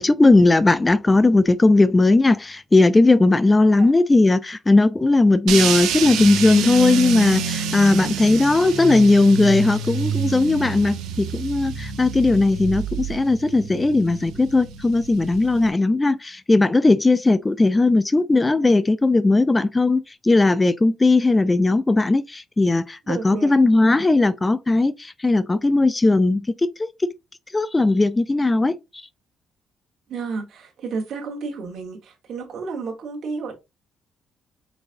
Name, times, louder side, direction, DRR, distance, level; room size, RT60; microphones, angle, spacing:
voice 1, 0.0-27.1 27.5-29.0, left 2 dB, 20° left, 0.4 m, -18 dB
voice 2, 3.6-3.9 23.0-23.6 30.1-33.5, right 4 dB, 65° right, 1.2 m, -32 dB
sound 1, 5.5-15.7, right 7 dB, 90° right, 0.8 m, -28 dB
4.8 x 4.0 x 2.5 m
cardioid pair, 90°, 0 cm